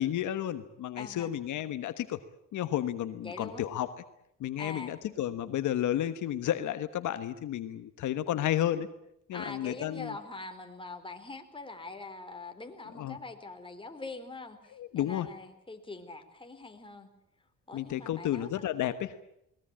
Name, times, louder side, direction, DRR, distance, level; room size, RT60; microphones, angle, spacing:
voice 1, 0.0-2.2 2.5-3.9 4.4-8.9 9.3-10.1 13.0-13.2 14.7-15.3 17.7-19.1, left 12 dB, 80° left, 11 dB, 1.3 m, -32 dB
voice 2, 1.0-1.3 3.2-3.7 4.6-5.0 9.3-17.1 17.7-18.5, left 3 dB, 15° left, 5 dB, 3.9 m, -43 dB
22.0 x 20.0 x 8.8 m, 0.78 s
cardioid pair, 90°, 30 cm